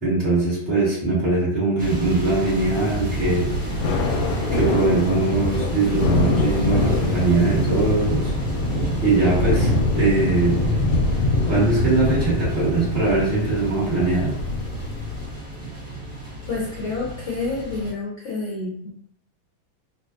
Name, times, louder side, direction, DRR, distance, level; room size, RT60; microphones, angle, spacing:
voice 1, 0.0-3.5 4.5-8.3 9.0-10.8 11.5-14.3, right 3 dB, 35° right, -9 dB, 1.6 m, -21 dB
sound 1, 1.8-17.9, right 2 dB, 5° right, 0.7 m, -31 dB
Thunder / Rain, 2.6-15.5, left 3 dB, 85° left, 1.4 m, -24 dB
voice 2, 16.5-18.9, left 3 dB, 65° left, -4 dB, 0.7 m, -28 dB
3.7 x 2.4 x 2.4 m, 0.70 s
omnidirectional pair, 2.1 m